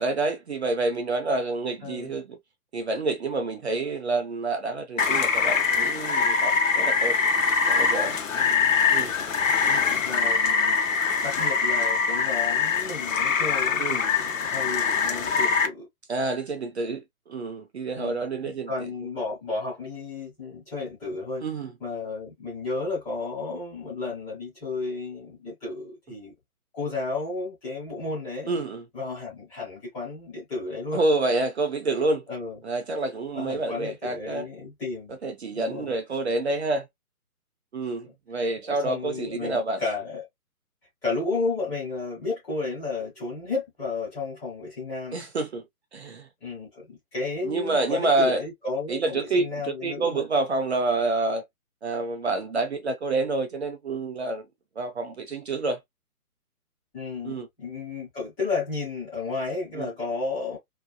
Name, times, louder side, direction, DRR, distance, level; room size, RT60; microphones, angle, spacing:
voice 1, 0.0-2.4 2.7-7.2 7.6-8.2 8.9-9.1 13.8-14.0 16.1-18.7 21.4-21.7 28.5-28.8 30.9-32.2 32.6-34.5 35.1-36.9 37.7-39.8 45.1-45.6 45.9-46.3 47.4-48.4 48.9-51.4 51.8-54.5 54.8-55.8 57.2-57.5 59.7-59.9, right 2 dB, 45° right, 0.7 m, -28 dB
Rain, 5.0-15.7, left 5 dB, 60° left, 0.9 m, -23 dB
voice 2, 8.3-8.8 9.5-10.8 11.2-15.9 18.0-21.4 21.8-26.3 26.7-28.5 28.9-31.0 32.3-32.6 33.3-35.2 35.5-36.0 38.6-40.2 41.0-45.2 46.4-50.2 56.9-60.6, left 3 dB, 5° left, 0.9 m, -33 dB
3.3 x 2.3 x 2.2 m
hypercardioid pair, 160°, 45 cm